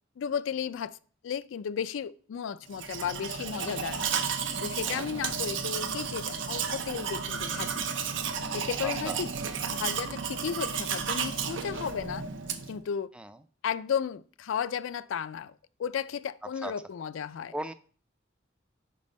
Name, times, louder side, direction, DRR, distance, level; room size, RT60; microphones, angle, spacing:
voice 1, 0.2-1.0 1.2-4.2 4.6-7.8 8.5-9.3 9.7-12.2 12.7-13.1 13.6-15.5 15.8-17.5, left 7 dB, 85° left, 0.4 m, -34 dB
Domestic sounds home sounds, 2.7-12.8, right 6 dB, 75° right, 0.7 m, -33 dB
voice 2, 8.8-9.2 13.1-13.4 16.6-16.7 17.5-17.7, right 1 dB, 5° right, 0.3 m, -37 dB
5.4 x 5.0 x 5.2 m
head